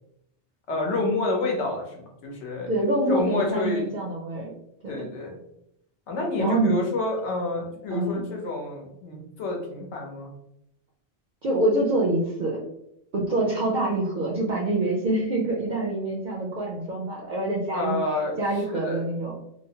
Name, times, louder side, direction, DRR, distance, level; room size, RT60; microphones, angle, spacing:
voice 1, 0.7-2.7 3.1-3.9 4.9-5.4 6.1-10.3 17.7-18.4 18.7-19.0, left 2 dB, 75° left, 1 dB, 1.0 m, -28 dB
voice 2, 2.7-4.5 4.8-5.1 6.4-6.7 7.9-8.2 11.4-12.6 13.1-18.0 18.4-19.3, right 2 dB, 60° right, -3 dB, 0.5 m, -25 dB
2.9 x 2.0 x 2.7 m, 0.79 s
omnidirectional pair, 1.2 m